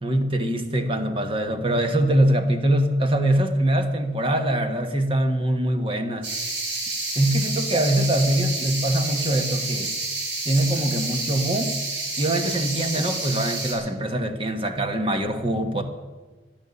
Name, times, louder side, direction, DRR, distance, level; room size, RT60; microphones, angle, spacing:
voice 1, 0.0-6.3 7.1-10.0 10.4-11.7 12.2-15.8, right 1 dB, 25° right, 6 dB, 1.4 m, -23 dB
sound 1, 6.2-13.7, right 2 dB, 70° right, 4.6 m, -29 dB
12.0 x 11.0 x 9.7 m, 1.3 s
head